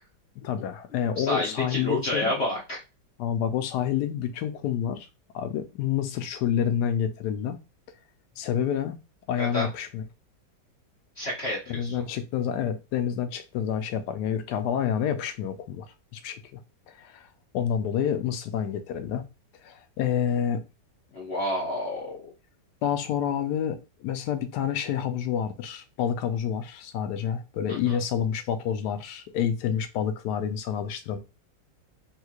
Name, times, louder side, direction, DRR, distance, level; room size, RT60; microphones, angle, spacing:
voice 1, 0.4-2.3 3.2-5.1 5.3-7.6 8.4-9.0 9.3-10.0 11.7-16.6 16.9-17.3 17.5-19.3 19.6-20.6 22.8-31.2, left 9 dB, 75° left, 1.1 m, -28 dB
voice 2, 1.2-2.8 9.4-9.7 11.2-12.0 21.1-22.2 27.7-28.0, left 1 dB, 50° left, 0.9 m, -29 dB
3.6 x 3.0 x 2.3 m
omnidirectional pair, 1.9 m